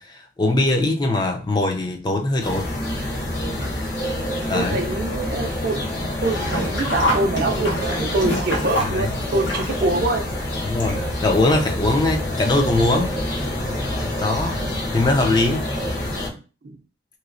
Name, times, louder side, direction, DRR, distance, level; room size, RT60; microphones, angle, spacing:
voice 1, 0.0-2.7 4.5-4.8 8.8-9.1 10.6-13.1 14.2-14.6 14.9-15.7, left 2 dB, 25° left, 0.4 m, -21 dB
sound 1, 2.4-16.3, left 1 dB, 60° left, 1.0 m, -27 dB
voice 2, 4.5-5.9 6.2-10.2 16.3-16.8, right 2 dB, 50° right, 0.5 m, -25 dB
Sink (filling or washing), 6.4-11.4 11.7-11.8 12.8-12.9 13.2-13.3, equal, 85° left, 1.2 m, -26 dB
3.2 x 3.0 x 2.5 m
head